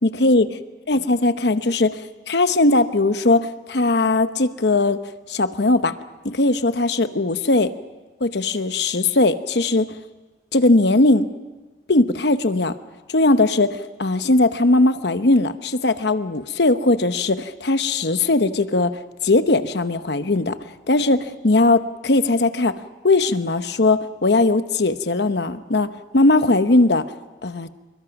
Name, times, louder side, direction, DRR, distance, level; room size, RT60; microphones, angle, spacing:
voice 1, 0.0-0.5 0.9-5.0 5.3-5.9 6.2-7.7 8.2-9.9 10.5-11.3 11.9-12.7 13.1-18.9 19.2-20.6 20.9-22.7 23.0-27.0 27.4-27.7, left 2 dB, 65° left, 11 dB, 1.0 m, -19 dB
26.0 x 22.5 x 6.0 m, 1.2 s
head